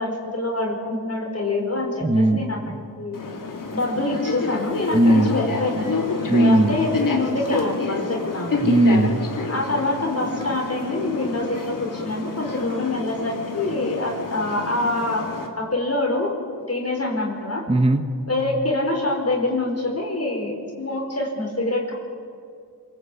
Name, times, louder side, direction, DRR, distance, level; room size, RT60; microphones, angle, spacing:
voice 1, 0.0-3.2 3.7-6.0 6.3-8.7 9.5-15.2 15.6-16.3 16.7-17.6 18.3-21.9, left 2 dB, 35° left, 1 dB, 4.5 m, -25 dB
voice 2, 2.0-2.4 2.7-2.8 4.9-5.3 6.3-6.7 8.6-9.2 17.7-18.0, right 1 dB, 15° right, 7 dB, 1.4 m, -17 dB
sound 1, 3.1-15.5, left 4 dB, 50° left, 3.2 m, -29 dB
26.5 x 19.0 x 8.4 m, 2.3 s
wide cardioid pair, 95°, 40 cm